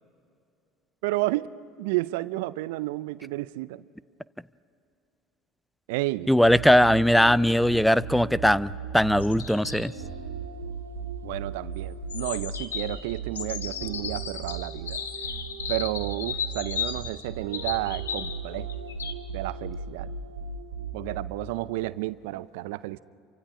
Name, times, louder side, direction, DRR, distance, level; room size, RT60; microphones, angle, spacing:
voice 1, 1.0-3.8 5.9-6.3 11.2-15.0 15.7-18.7 19.3-20.1 20.9-23.0, right 18 dB, 70° right, 18 dB, 0.5 m, -31 dB
voice 2, 6.3-9.9, equal, ahead, 20 dB, 0.5 m, -20 dB
sound 1, 6.4-21.6, right 5 dB, 90° right, 1.8 m, -37 dB
sound 2, 9.2-9.9 12.1-18.4 18.7-19.1, left 7 dB, 85° left, 1.1 m, -35 dB
28.0 x 24.5 x 4.9 m, 2.5 s
hypercardioid pair, 70°, 0 cm